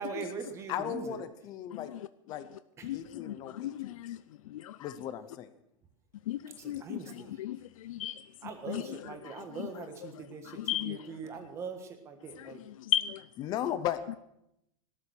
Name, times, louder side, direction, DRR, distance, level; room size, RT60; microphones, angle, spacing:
voice 1, 0.0-1.2 2.8-2.9 6.6-7.4 8.4-12.6, right 5 dB, 15° right, 1.5 m, -42 dB
voice 2, 0.7-1.9 2.3-2.5 2.9-3.9 4.8-5.5 13.4-14.2, left 10 dB, 20° left, 0.8 m, -36 dB
voice 3, 3.2-4.2 4.5-4.8 6.3-8.2 8.7-8.8 9.3-9.4 10.5-11.0 12.4-12.5 12.8-13.2, left 12 dB, 75° left, 0.5 m, -35 dB
17.0 x 13.0 x 6.3 m
supercardioid pair, 180°, 18 cm